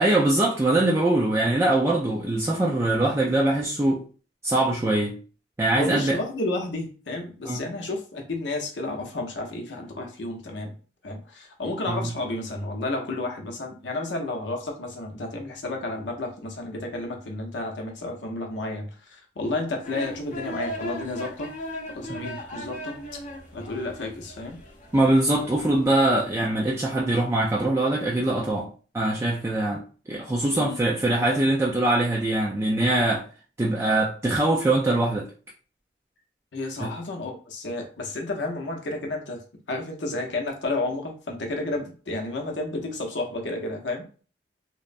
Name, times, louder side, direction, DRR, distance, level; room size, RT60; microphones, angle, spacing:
voice 1, 0.0-4.0 4.4-5.2 5.6-6.2 7.4-7.6 11.9-12.1 22.2-22.3 24.9-28.7 28.9-29.8 30.1-33.2 33.6-35.3 36.8-36.9, right 2 dB, 15° right, 0.3 m, -22 dB
voice 2, 5.7-10.7 11.0-21.5 21.9-23.0 23.5-24.6 30.5-30.8 31.1-31.3 36.5-39.4 39.7-44.1, left 2 dB, 90° left, 0.7 m, -31 dB
sound 1, 19.8-26.2, equal, 45° left, 0.7 m, -38 dB
3.0 x 2.0 x 2.5 m
head